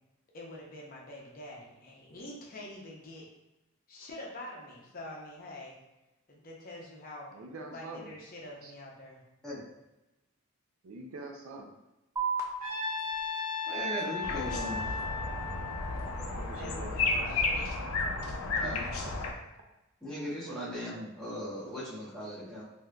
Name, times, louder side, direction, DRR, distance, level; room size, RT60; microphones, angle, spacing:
voice 1, 0.3-3.3 3.9-5.8 6.3-7.4 7.7-9.3 16.5-17.7, left 1 dB, 45° left, -2 dB, 0.6 m, -45 dB
voice 2, 7.3-8.1 8.6-8.7 10.8-11.7 16.0-17.7 18.5-18.7 20.4-20.7 21.7-21.8, right 2 dB, 70° right, 3 dB, 0.4 m, -45 dB
sound 1, 12.2-19.1, right 4 dB, 15° right, 0.4 m, -42 dB
Trumpet, 12.6-16.8, left 3 dB, 40° right, 1.2 m, -36 dB
voice 3, 13.7-14.9 18.6-18.8 20.0-22.6, equal, 5° left, -11 dB, 0.9 m, -38 dB
sound 2, 14.2-19.3, left 3 dB, 90° left, 0.5 m, -33 dB
3.5 x 2.6 x 2.2 m, 0.96 s
head